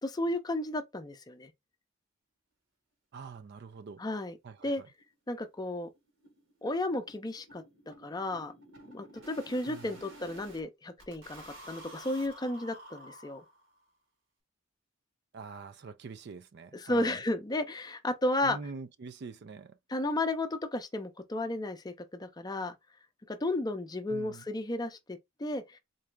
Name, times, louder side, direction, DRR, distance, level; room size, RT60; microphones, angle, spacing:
voice 1, 0.0-1.5 4.0-4.4 4.6-4.8 5.3-5.9 6.6-8.5 8.9-13.4 16.7-18.6 19.9-22.7 23.3-25.8, left 1 dB, 20° left, 0.5 m, -33 dB
voice 2, 3.1-4.0 4.4-4.9 9.7-9.9 15.3-17.2 18.4-19.8 24.1-24.4, right 4 dB, 55° right, 0.4 m, -45 dB
sound 1, 3.8-3.9 4.2-4.3 4.6-4.7 5.0-5.1 5.4-10.6 11.0-13.8, right 1 dB, 75° right, 1.4 m, -52 dB
3.9 x 2.4 x 3.3 m
head